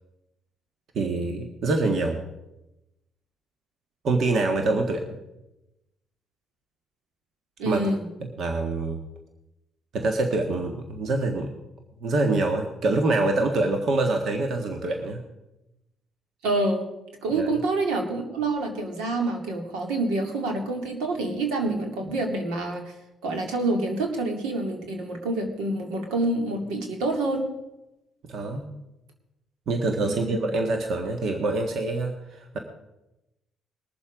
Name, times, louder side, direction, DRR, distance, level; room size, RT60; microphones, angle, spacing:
voice 1, 0.9-2.2 4.0-5.0 7.6-7.8 8.4-9.0 9.9-11.5 12.0-15.2 17.3-17.5 28.3-28.7 29.7-32.6, right 2 dB, 60° right, 4 dB, 1.6 m, -25 dB
voice 2, 7.6-8.1 16.4-16.8 17.2-22.9 23.2-27.5 30.0-30.4, right 2 dB, 85° right, 3 dB, 2.3 m, -27 dB
21.0 x 7.2 x 5.1 m, 0.93 s
supercardioid pair, 75°, 0 cm